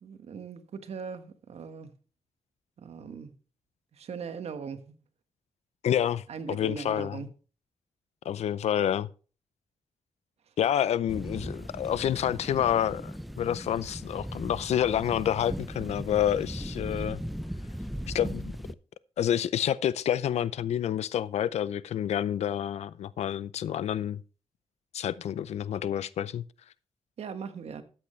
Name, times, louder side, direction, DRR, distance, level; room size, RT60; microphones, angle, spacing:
voice 1, 0.0-1.9 2.8-3.3 3.9-4.9 6.3-7.3 27.2-27.8, right 6 dB, 75° right, 1.4 m, -39 dB
voice 2, 5.8-7.2 8.2-9.1 10.6-17.2 18.1-18.5 19.2-24.2 24.9-26.4, left 10 dB, 85° left, 0.5 m, -28 dB
sound 1, 11.1-18.7, equal, ahead, 0.6 m, -38 dB
13.5 x 8.6 x 3.2 m
cardioid pair, 80°, 11 cm